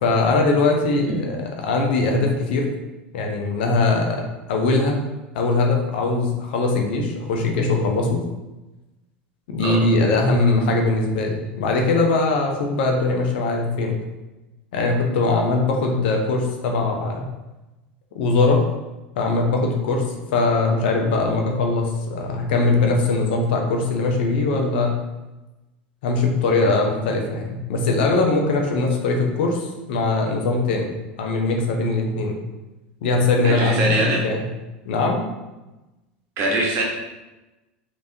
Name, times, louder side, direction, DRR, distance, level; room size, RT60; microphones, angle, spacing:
voice 1, 0.0-2.7 3.1-4.2 4.5-5.0 5.3-8.2 9.5-14.0 14.7-17.3 18.1-18.6 19.2-20.0 20.3-24.9 26.0-30.9 31.2-32.4 33.0-33.9 34.2-34.4 34.8-35.2, left 3 dB, 70° left, 1 dB, 0.6 m, -21 dB
voice 2, 33.4-34.2 36.4-36.8, right 2 dB, 50° right, -2 dB, 1.0 m, -22 dB
3.2 x 3.0 x 2.7 m, 1.1 s
hypercardioid pair, 90°, 6 cm